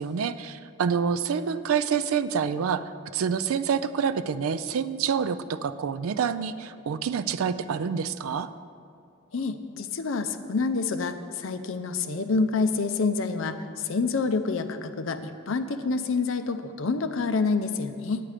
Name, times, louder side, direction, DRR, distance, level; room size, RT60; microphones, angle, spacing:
voice 1, 0.0-2.8 3.1-8.5, right 6 dB, 75° right, 13 dB, 0.4 m, -27 dB
voice 2, 9.3-18.2, left 4 dB, 65° left, 8 dB, 0.5 m, -27 dB
9.2 x 8.7 x 4.9 m, 2.4 s
head